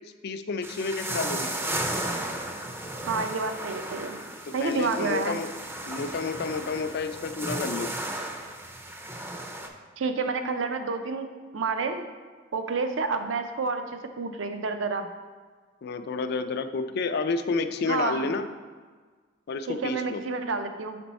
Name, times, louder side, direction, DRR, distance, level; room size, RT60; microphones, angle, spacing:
voice 1, 0.2-1.5 4.5-5.5 5.8-7.9 15.8-18.5 19.5-20.2, left 4 dB, 55° left, 9 dB, 0.4 m, -30 dB
sound 1, 0.6-9.7, right 1 dB, 10° right, 0.5 m, -34 dB
voice 2, 3.0-4.2 4.5-5.4 10.0-11.3 11.5-12.1 12.5-15.1 17.9-18.3 19.7-21.0, right 4 dB, 70° right, 7 dB, 0.5 m, -29 dB
6.1 x 4.4 x 4.1 m, 1.5 s
head